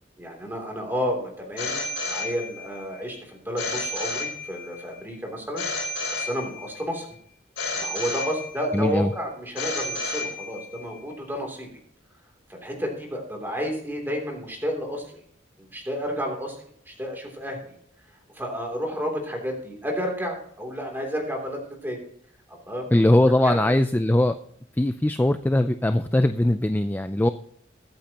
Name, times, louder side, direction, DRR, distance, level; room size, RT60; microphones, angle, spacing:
voice 1, 0.2-5.6 6.1-7.1 7.7-11.7 12.5-15.1 15.6-16.6 16.9-17.6 18.3-22.0 22.5-22.9 23.4-23.7, equal, 10° right, 1 dB, 3.0 m, -31 dB
Telephone, 1.6-2.8 3.6-4.8 5.6-6.8 7.6-8.8 9.6-10.8, left 3 dB, 80° left, 4.1 m, -31 dB
voice 2, 8.7-9.1 22.9-24.4 24.7-27.3, left 1 dB, 10° left, 9 dB, 0.4 m, -20 dB
22.5 x 8.7 x 2.9 m, 0.65 s
head